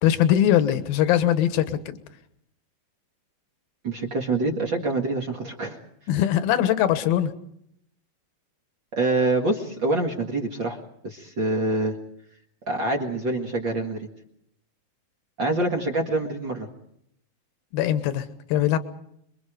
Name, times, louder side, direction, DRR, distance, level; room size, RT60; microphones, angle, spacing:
voice 1, 0.0-2.0 6.1-7.3 17.7-18.8, left 11 dB, 75° left, 10 dB, 3.0 m, -21 dB
voice 2, 3.8-5.8 8.9-12.0 12.7-14.1 15.4-16.7, right 2 dB, 40° right, 2 dB, 1.8 m, -26 dB
27.5 x 23.0 x 5.1 m, 0.73 s
omnidirectional pair, 4.4 m